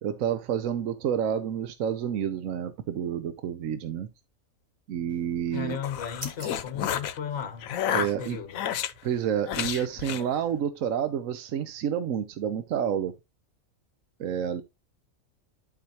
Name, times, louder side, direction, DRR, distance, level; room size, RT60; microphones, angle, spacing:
voice 1, 0.0-4.1 4.9-5.8 7.9-8.4 9.0-13.1 14.2-14.6, right 9 dB, 75° right, 1.1 m, -29 dB
sound 1, 5.1-7.9, right 1 dB, 30° right, 2.0 m, -48 dB
voice 2, 5.5-7.7 8.0-8.6, left 8 dB, 60° left, 1.4 m, -35 dB
sound 2, 5.6-7.2 7.6-8.9 9.5-10.3, left 10 dB, 90° left, 1.1 m, -31 dB
11.5 x 4.8 x 2.9 m
omnidirectional pair, 1.4 m